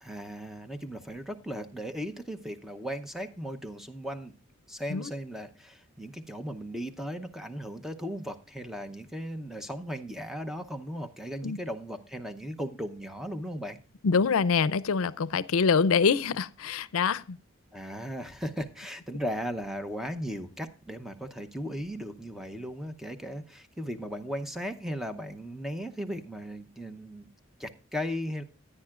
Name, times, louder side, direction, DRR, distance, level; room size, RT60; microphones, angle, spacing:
voice 1, 0.0-4.3 4.7-13.8 17.7-27.3 27.6-28.4, equal, ahead, 0.7 m, -37 dB
voice 2, 14.0-17.4, left 5 dB, 85° left, 0.5 m, -25 dB
14.5 x 9.8 x 2.4 m
head